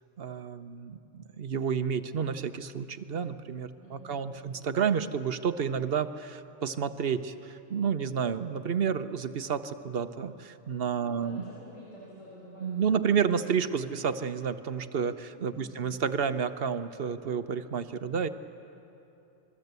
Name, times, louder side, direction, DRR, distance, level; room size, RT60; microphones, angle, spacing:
voice 1, 0.2-11.4 12.6-18.3, right 7 dB, 50° right, 10 dB, 1.0 m, -30 dB
voice 2, 3.8-4.6 11.0-13.4 15.6-15.9, equal, 70° left, -6 dB, 6.0 m, -49 dB
27.0 x 21.5 x 8.2 m, 2.9 s
omnidirectional pair, 1.4 m